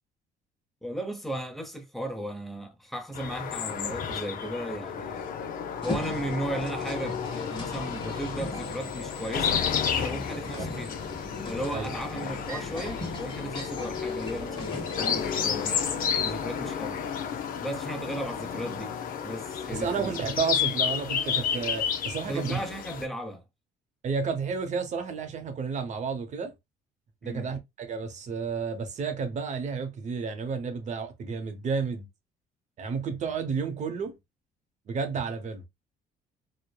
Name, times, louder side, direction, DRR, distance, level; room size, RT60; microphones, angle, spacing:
voice 1, 0.8-5.3 5.8-9.7 10.0-10.9 11.5-15.8 16.2-17.0 17.6-18.9 19.2-20.0 22.2-23.4 27.2-27.5, right 1 dB, ahead, 0.7 m, -35 dB
sound 1, 3.1-23.1, left 7 dB, 55° left, 0.6 m, -32 dB
sound 2, 5.8-15.8, left 2 dB, 30° left, 1.2 m, -39 dB
voice 2, 19.7-22.6 24.0-26.5 27.2-32.1 32.8-34.2 34.9-35.7, right 5 dB, 45° right, 0.7 m, -31 dB
3.0 x 2.1 x 2.2 m
cardioid pair, 110°, 17 cm